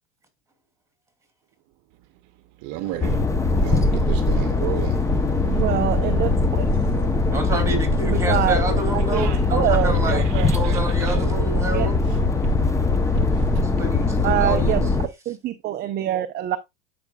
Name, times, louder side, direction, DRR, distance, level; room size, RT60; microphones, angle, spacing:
voice 1, 2.6-3.3 3.6-5.6 9.1-9.5 10.2-11.2 12.0-13.0 13.3-13.8, right 15 dB, 50° right, 0.8 m, -35 dB
sound 1, 2.8-14.8, left 3 dB, 85° left, 2.8 m, -41 dB
sound 2, 3.0-15.1, left 3 dB, 10° left, 0.7 m, -21 dB
voice 2, 5.4-6.3 8.0-8.6 8.9-9.2 9.5-10.5 11.7-11.9 14.2-14.8 15.3-16.6, right 12 dB, 25° right, 0.5 m, -24 dB
voice 3, 7.3-10.3 10.5-12.0 13.8-14.7, right 1 dB, 10° right, 2.9 m, -28 dB
11.5 x 5.1 x 2.3 m
hypercardioid pair, 110°, 36 cm